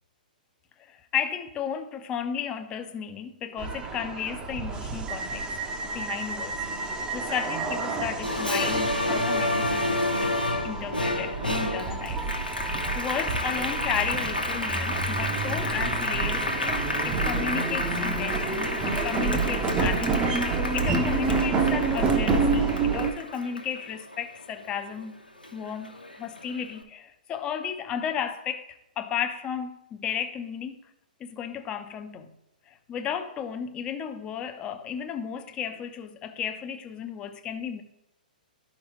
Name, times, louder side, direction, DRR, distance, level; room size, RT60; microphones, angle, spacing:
voice 1, 0.9-5.5 5.9-10.4 10.6-12.2 12.7-16.8 17.0-20.4 20.7-25.1 25.5-28.7 29.0-30.8 31.2-32.3 32.7-37.8, left 8 dB, 20° left, 0.7 m, -34 dB
sound 1, 3.6-23.1, right 4 dB, 15° right, 0.7 m, -29 dB
Applause, 8.2-25.0 25.4-26.6, left 1 dB, 90° left, 1.1 m, -30 dB
12.0 x 5.2 x 3.1 m
figure-of-eight pair, 115°, 5 cm